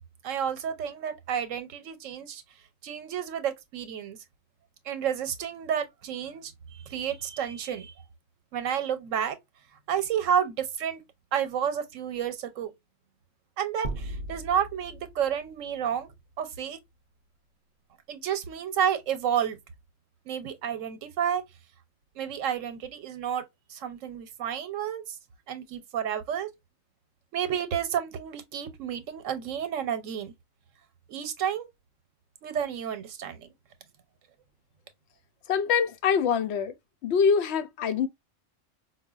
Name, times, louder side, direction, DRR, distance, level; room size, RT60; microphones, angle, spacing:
voice 1, 0.2-2.4 2.8-4.2 4.9-7.9 8.5-9.4 9.9-11.0 11.3-12.7 13.6-16.1 16.4-16.8 18.1-19.6 20.3-21.4 22.2-23.4 23.7-25.2 25.5-26.5 27.3-30.3 31.1-31.7 32.4-33.5, right 8 dB, 80° right, 1.1 m, -30 dB
sound 1, 13.8-16.4, right 2 dB, 50° right, 0.7 m, -38 dB
voice 2, 35.5-36.7 37.0-38.1, left 6 dB, 65° left, 0.8 m, -24 dB
4.7 x 2.2 x 2.3 m
omnidirectional pair, 1.3 m